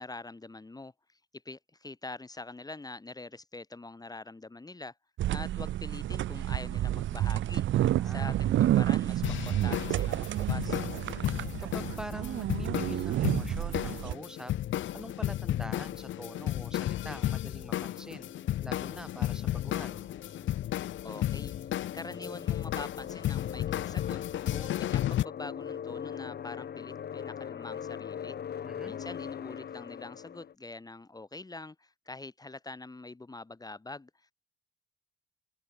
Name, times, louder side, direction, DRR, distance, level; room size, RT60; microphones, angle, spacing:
voice 1, 0.0-4.9 5.3-7.6 8.0-10.8 21.0-24.2 24.5-28.4 28.9-34.3, left 2 dB, 20° left, 3.4 m, -44 dB
sound 1, 5.2-14.1, right 13 dB, 75° right, 1.2 m, -30 dB
voice 2, 7.8-8.4 11.6-14.5 14.9-18.3 18.6-20.1 28.6-29.0, equal, 5° right, 3.7 m, -45 dB
sound 2, 9.2-25.2, left 13 dB, 75° left, 1.2 m, -33 dB
sound 3, 14.0-30.5, left 8 dB, 55° left, 3.2 m, -42 dB
open air
cardioid pair, 90°, 20 cm